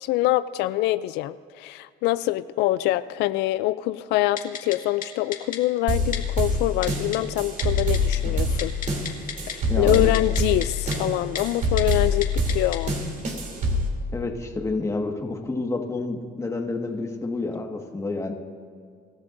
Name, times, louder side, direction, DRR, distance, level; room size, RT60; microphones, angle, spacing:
voice 1, 0.0-8.7 9.5-12.9, left 16 dB, 90° left, 14 dB, 0.4 m, -25 dB
Typing, 4.4-4.8 5.0-5.1 5.3-5.6 6.1-6.2 6.8-7.2 7.6-8.2 8.5-9.5 9.9-10.7 10.9-11.0 11.4-11.5 11.8-12.0 12.2-12.8 13.2-13.3, left 8 dB, 55° left, 2.0 m, -32 dB
sound 1, 5.9-13.9, left 1 dB, 50° right, 3.0 m, -25 dB
voice 2, 9.7-10.1 14.1-18.3, left 3 dB, 15° left, 3 dB, 1.7 m, -29 dB
26.0 x 13.5 x 2.6 m, 2.1 s
cardioid pair, 110°, 17 cm